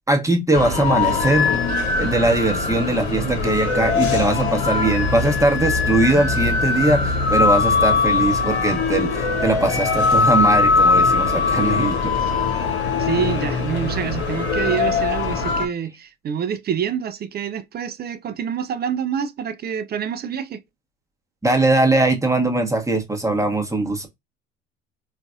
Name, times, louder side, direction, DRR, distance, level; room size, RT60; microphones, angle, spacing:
voice 1, 0.1-1.6 2.0-12.1 21.4-24.1, right 2 dB, 10° right, 1.0 m, -20 dB
sound 1, 0.5-15.7, left 4 dB, 90° left, 0.9 m, -21 dB
sound 2, 3.8-8.0, left 4 dB, 60° left, 0.6 m, -28 dB
voice 2, 13.0-20.6, right 8 dB, 30° right, 0.4 m, -27 dB
3.8 x 2.5 x 2.2 m
hypercardioid pair, 65°, 31 cm